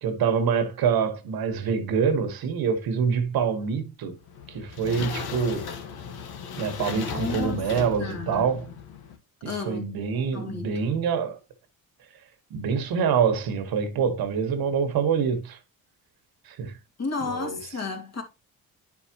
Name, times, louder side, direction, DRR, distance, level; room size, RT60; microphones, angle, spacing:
voice 1, 0.0-4.1 4.5-5.7 6.6-8.7 9.4-11.4 12.5-15.6 16.5-16.8 17.2-17.6, right 6 dB, 80° right, 1.5 m, -26 dB
sound 1, 4.2-9.2, left 7 dB, 90° left, 1.6 m, -36 dB
voice 2, 6.9-7.7 8.0-8.5 9.4-9.9 10.3-10.8 17.0-18.2, left 4 dB, 45° left, 2.5 m, -33 dB
10.5 x 4.9 x 2.9 m
cardioid pair, 120°, 36 cm